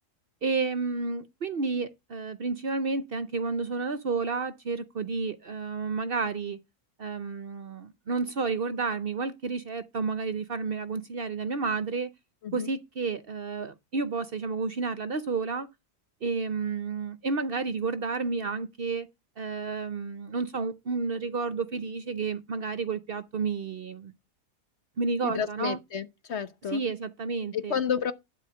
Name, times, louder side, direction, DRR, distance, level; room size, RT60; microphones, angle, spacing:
voice 1, 0.4-6.6 7.0-12.1 12.5-15.7 16.2-19.1 19.4-24.1 25.0-25.8 26.7-27.8, right 4 dB, 50° right, 0.8 m, -31 dB
voice 2, 25.2-26.8 27.5-28.1, left 7 dB, 55° left, 1.1 m, -31 dB
11.5 x 4.2 x 6.8 m
omnidirectional pair, 1.5 m